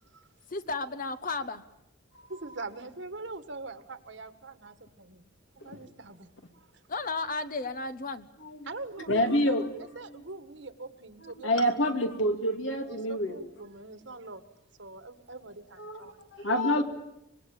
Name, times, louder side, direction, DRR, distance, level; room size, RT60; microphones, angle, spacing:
voice 1, 0.5-1.6 6.9-8.3, left 3 dB, 45° left, 11 dB, 1.0 m, -33 dB
voice 2, 2.3-5.3 5.6-6.3 6.5-6.8 8.6-9.6 9.9-12.4 12.9-14.4 14.8-16.5, right 3 dB, 60° right, 10 dB, 1.7 m, -43 dB
voice 3, 9.1-9.7 10.1-10.2 11.2-13.4 15.8-16.8, equal, 70° left, 6 dB, 2.7 m, -28 dB
25.0 x 22.0 x 8.9 m, 0.82 s
head